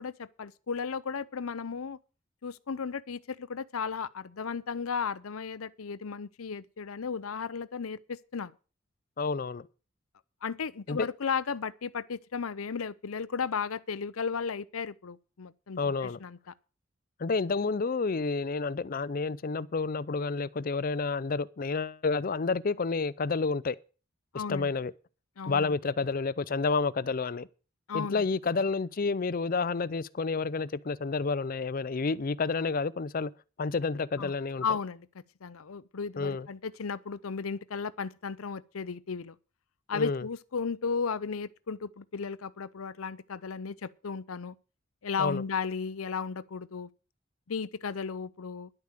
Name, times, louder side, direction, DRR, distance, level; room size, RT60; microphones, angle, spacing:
voice 1, 0.0-2.0 2.4-8.5 10.4-16.5 24.3-24.7 25.4-25.8 27.9-28.3 34.2-34.3 34.6-35.1 35.4-39.4 39.9-44.5 45.0-46.9 47.5-48.7, left 5 dB, 85° left, 0.7 m, -35 dB
voice 2, 9.2-9.7 10.9-11.1 15.8-16.2 17.2-23.8 24.3-24.9 25.5-27.5 27.9-33.3 33.6-34.6 36.2-36.5 39.9-40.2 45.2-45.4, left 4 dB, 40° left, 0.5 m, -30 dB
11.0 x 8.4 x 6.7 m
head